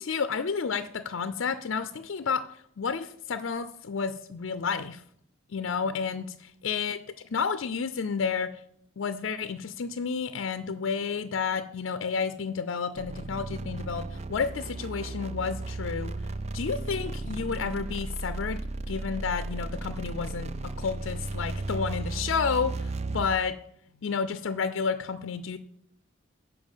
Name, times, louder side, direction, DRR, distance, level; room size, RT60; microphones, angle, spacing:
voice 1, 0.0-2.4 2.8-5.0 5.5-7.0 7.3-8.6 9.0-16.2 16.5-18.6 18.9-23.6 24.0-25.6, left 5 dB, 70° left, 11 dB, 0.5 m, -31 dB
sound 1, 13.0-23.4, right 2 dB, 30° right, 0.4 m, -35 dB
10.5 x 4.6 x 7.3 m, 0.68 s
head